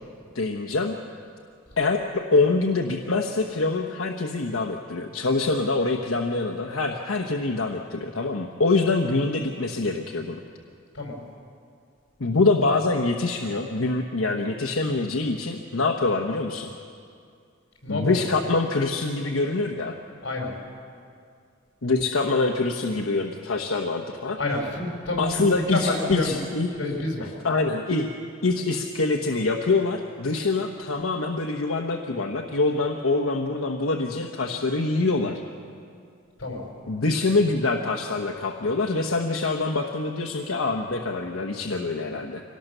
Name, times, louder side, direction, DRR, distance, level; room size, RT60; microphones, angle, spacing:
voice 1, 0.3-0.9 1.8-10.4 12.2-16.7 17.9-20.0 21.8-24.4 25.2-27.0 27.4-28.1 28.4-35.4 36.9-42.4, left 3 dB, 90° left, 2 dB, 1.1 m, -25 dB
voice 2, 17.8-18.4 20.2-20.5 24.4-26.3 26.7-27.3 36.4-36.7, left 2 dB, 60° left, 1 dB, 5.1 m, -28 dB
24.5 x 18.5 x 6.8 m, 2.3 s
head